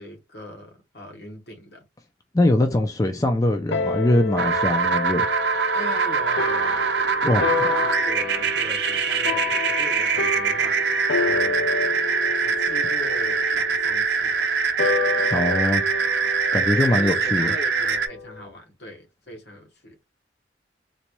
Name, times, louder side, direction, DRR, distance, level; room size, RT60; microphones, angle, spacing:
voice 1, 0.0-1.8 5.7-6.8 7.3-10.8 11.2-14.5 15.2-15.3 16.7-20.0, left 1 dB, 65° left, 1.0 m, -39 dB
voice 2, 2.3-5.3 7.2-7.5 15.3-15.8 16.5-17.5, left 1 dB, 20° left, 0.4 m, -22 dB
sound 1, 3.7-18.4, left 4 dB, 85° left, 0.5 m, -29 dB
sound 2, 4.4-18.1, right 5 dB, 70° right, 0.6 m, -23 dB
4.0 x 2.3 x 2.9 m
head